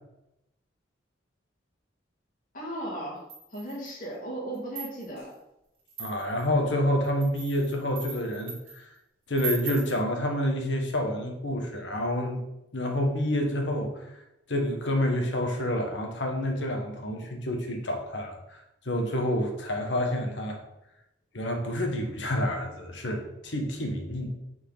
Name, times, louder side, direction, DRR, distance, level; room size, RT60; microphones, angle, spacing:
voice 1, 2.5-5.3, right 1 dB, 45° left, -4 dB, 2.3 m, -36 dB
sound 1, 3.3-4.0 4.5-5.2 5.9-6.4 7.0-8.8 9.3-10.0, right 5 dB, 30° right, 2.5 m, -38 dB
voice 2, 6.0-8.9 9.3-12.4 12.7-14.2 14.5-18.6 18.8-20.6 21.3-24.3, left 1 dB, 80° left, 3 dB, 1.4 m, -28 dB
8.6 x 4.7 x 4.0 m, 0.87 s
head